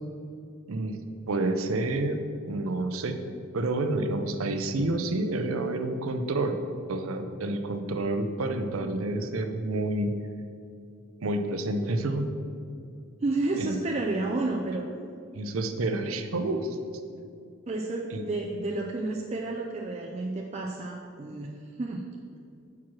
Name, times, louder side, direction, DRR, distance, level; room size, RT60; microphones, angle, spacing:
voice 1, 0.7-1.0 1.3-2.2 2.5-3.2 3.5-6.6 6.9-10.1 11.2-12.3 13.6-13.8 15.3-17.0 18.1-18.3, right 2 dB, 75° right, 7 dB, 0.6 m, -29 dB
voice 2, 13.2-14.8 17.7-21.5 21.8-22.0, right 2 dB, 30° right, 0 dB, 0.4 m, -31 dB
5.9 x 4.7 x 6.0 m, 2.4 s
head